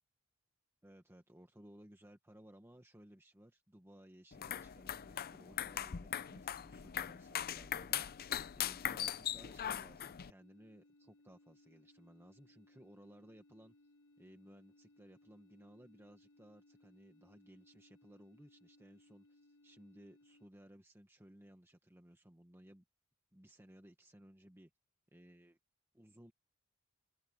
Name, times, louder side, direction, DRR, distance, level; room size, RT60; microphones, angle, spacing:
voice 1, 0.8-22.8 23.3-24.7 25.1-25.6 25.9-26.3, right 1 dB, 10° right, 1.2 m, -60 dB
sound 1, 4.3-10.3, left 10 dB, 45° left, 0.5 m, -40 dB
sound 2, 10.4-20.5, left 2 dB, 75° left, 6.2 m, -67 dB
open air
head